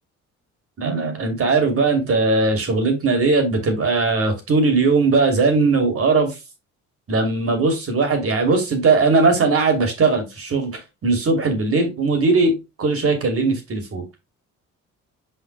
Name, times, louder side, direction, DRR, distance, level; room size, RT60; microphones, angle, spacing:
voice 1, 0.8-6.3 7.1-14.0, right 3 dB, 50° right, 5 dB, 2.8 m, -19 dB
5.8 x 5.1 x 3.3 m, 0.24 s
cardioid pair, 90°, 30 cm